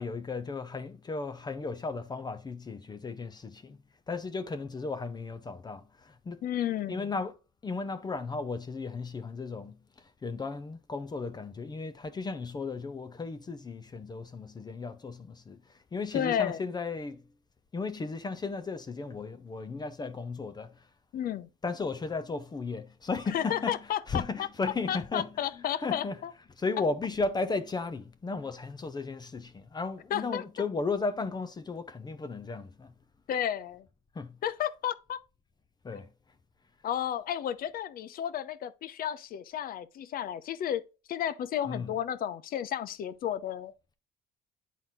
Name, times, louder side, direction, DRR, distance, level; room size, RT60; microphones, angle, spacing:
voice 1, 0.0-3.8 4.1-6.4 6.9-7.3 7.6-17.2 17.7-20.9 21.6-26.2 26.6-32.9 34.1-34.4 35.8-36.1 41.6-41.9, left 4 dB, 25° left, 0.8 m, -35 dB
voice 2, 6.4-7.1 16.1-16.6 21.1-21.5 23.3-24.5 24.9-26.3 30.1-30.4 33.3-33.9 34.4-35.2 35.9-36.0 36.8-40.8 41.1-43.7, left 10 dB, 60° left, 0.8 m, -32 dB
9.3 x 4.0 x 3.8 m
cardioid pair, 110°, 17 cm